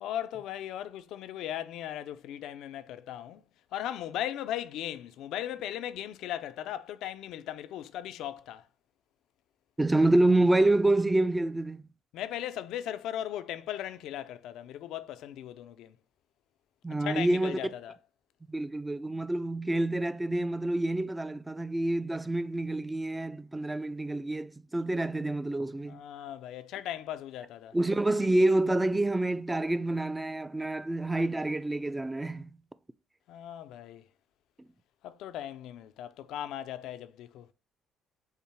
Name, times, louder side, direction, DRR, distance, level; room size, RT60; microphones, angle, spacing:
voice 1, 0.0-3.4 3.7-8.6 12.1-16.0 17.0-18.0 25.9-27.8 33.3-34.1 35.0-37.5, left 11 dB, 75° left, 0.3 m, -38 dB
voice 2, 9.8-11.8 16.8-17.6 18.5-26.0 27.7-32.5, right 2 dB, 15° right, 0.3 m, -27 dB
5.5 x 2.0 x 4.5 m
supercardioid pair, 75°, 0 cm